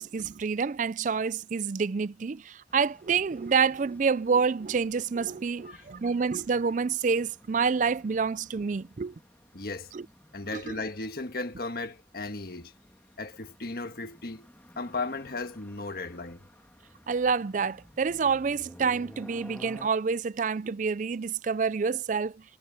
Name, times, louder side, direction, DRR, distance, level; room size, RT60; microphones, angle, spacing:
voice 1, 0.0-9.1 9.9-10.0 10.5-10.7 17.1-22.4, right 5 dB, 45° right, 0.4 m, -28 dB
sound 1, 2.7-19.9, equal, 10° left, 2.2 m, -54 dB
voice 2, 5.5-5.9 9.5-9.9 10.3-12.7 13.2-14.5 14.8-16.5, left 3 dB, 55° left, 1.5 m, -36 dB
head